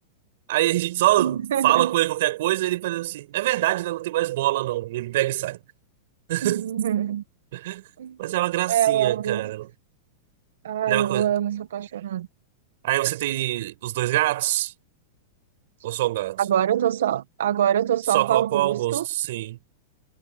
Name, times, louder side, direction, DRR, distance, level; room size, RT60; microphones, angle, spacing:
voice 1, 0.5-5.6 6.3-6.7 7.5-7.8 8.2-9.7 10.9-11.3 12.8-14.7 15.8-16.4 18.1-19.6, right 16 dB, 65° right, 7.6 m, -24 dB
voice 2, 1.2-1.9 6.4-7.2 8.0-8.2 8.7-9.5 10.6-12.3 16.4-19.1, right 10 dB, 85° right, 1.3 m, -24 dB
supercardioid pair, 145°, 0 cm